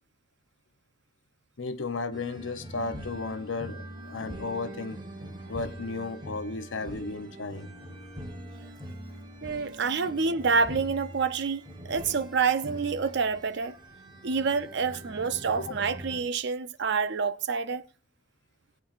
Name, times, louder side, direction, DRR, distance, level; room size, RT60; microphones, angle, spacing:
voice 1, 1.6-5.0 5.5-7.7 15.6-15.7, left 3 dB, 75° left, 0.8 m, -34 dB
sound 1, 2.1-16.2, right 1 dB, 25° right, 1.5 m, -43 dB
voice 2, 9.4-13.8 14.2-17.8, right 5 dB, 65° right, 0.6 m, -27 dB
18.5 x 8.7 x 2.5 m
head